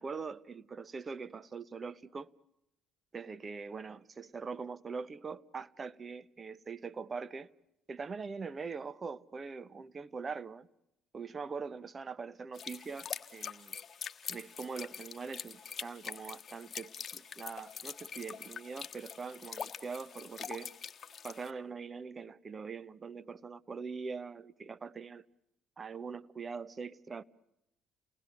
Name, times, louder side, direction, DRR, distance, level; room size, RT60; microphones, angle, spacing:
voice 1, 0.0-2.3 3.1-7.5 7.9-10.7 11.1-13.7 14.3-20.7 21.2-25.2 25.8-27.2, right 5 dB, 35° right, 1.0 m, -42 dB
sound 1, 12.5-21.5, left 7 dB, 45° left, 1.5 m, -44 dB
29.5 x 19.5 x 8.3 m
supercardioid pair, 65°, 0 cm